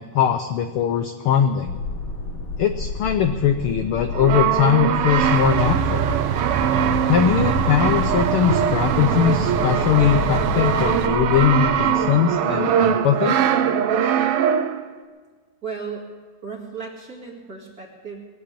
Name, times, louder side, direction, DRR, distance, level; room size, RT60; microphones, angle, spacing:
voice 1, 0.0-1.7 2.6-6.0 7.1-13.3, left 9 dB, 80° left, 7 dB, 1.2 m, -21 dB
sound 1, 1.6-11.9, left 4 dB, 50° left, 3.1 m, -30 dB
Brass instrument, 4.1-14.9, right 8 dB, 70° right, 1.5 m, -22 dB
sound 2, 5.2-11.1, right 9 dB, 85° right, 2.2 m, -26 dB
voice 2, 15.6-16.1 16.4-18.2, right 5 dB, 35° right, -1 dB, 2.2 m, -35 dB
21.0 x 7.7 x 8.6 m, 1.4 s
omnidirectional pair, 3.3 m